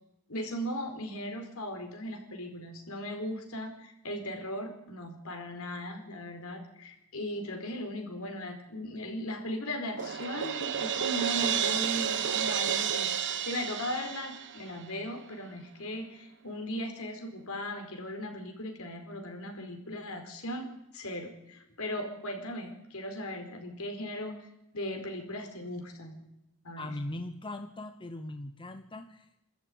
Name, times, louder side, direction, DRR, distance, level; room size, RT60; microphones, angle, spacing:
voice 1, 0.3-20.7 20.9-26.2 26.6-26.9, left 1 dB, 65° left, 4 dB, 4.6 m, -38 dB
Crash cymbal, 10.0-14.9, right 8 dB, 55° right, 1.1 m, -31 dB
voice 2, 26.8-29.4, left 1 dB, 20° left, 7 dB, 1.0 m, -40 dB
26.5 x 13.5 x 9.5 m, 0.85 s
head